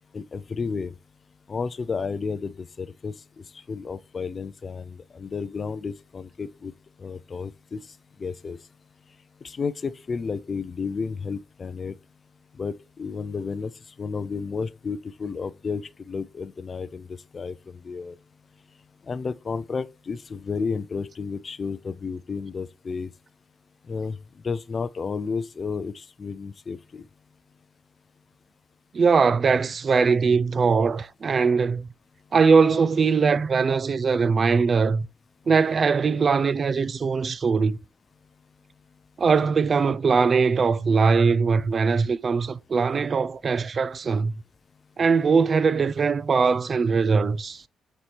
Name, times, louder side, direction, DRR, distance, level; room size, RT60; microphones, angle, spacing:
voice 1, 0.1-0.9 1.5-6.7 7.0-7.8 8.2-8.6 9.4-12.0 12.6-13.7 14.0-18.2 19.1-23.1 23.9-24.2 24.4-27.1, left 5 dB, 40° left, 0.4 m, -32 dB
voice 2, 28.9-31.9 32.3-35.1 35.5-37.8 39.2-44.3 45.0-47.6, right 5 dB, 40° right, 0.4 m, -21 dB
7.4 x 4.2 x 3.3 m
cardioid pair, 90°, 0 cm